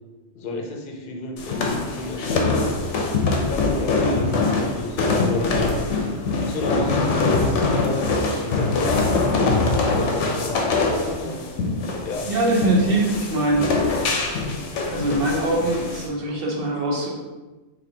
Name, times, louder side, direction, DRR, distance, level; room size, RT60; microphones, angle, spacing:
voice 1, 0.3-2.7 3.3-5.7 6.4-11.5 12.0-12.3 12.8-13.0, left 3 dB, 55° left, 2 dB, 0.7 m, -32 dB
sound 1, 1.4-16.1, left 3 dB, 90° left, 0.9 m, -23 dB
voice 2, 12.2-13.7 14.9-17.1, right 2 dB, 55° right, -2 dB, 0.9 m, -22 dB
4.1 x 2.8 x 2.7 m, 1.2 s
omnidirectional pair, 1.2 m